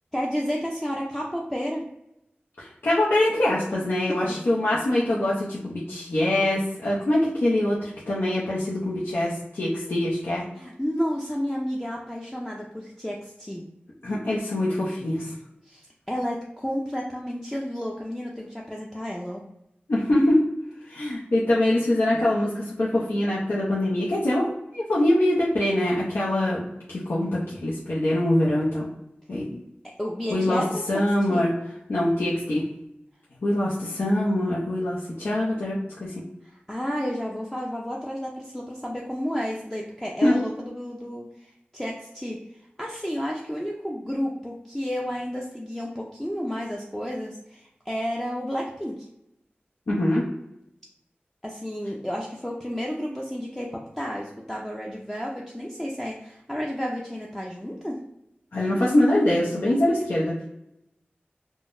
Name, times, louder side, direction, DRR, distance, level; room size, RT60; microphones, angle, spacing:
voice 1, 0.1-1.9 4.1-4.2 10.5-13.6 15.7-19.4 30.0-31.0 31.3-31.5 36.4-42.4 42.8-49.0 51.4-58.0, equal, 10° left, -2 dB, 0.4 m, -31 dB
voice 2, 2.6-10.5 14.0-15.3 19.9-20.4 20.8-28.9 29.3-29.6 30.3-30.6 30.9-31.5 31.9-32.6 33.4-36.2 40.2-40.3 49.9-50.2 58.5-60.4, left 1 dB, 85° left, -7 dB, 0.6 m, -24 dB
3.7 x 2.0 x 2.5 m, 0.83 s
wide cardioid pair, 70°, 4 cm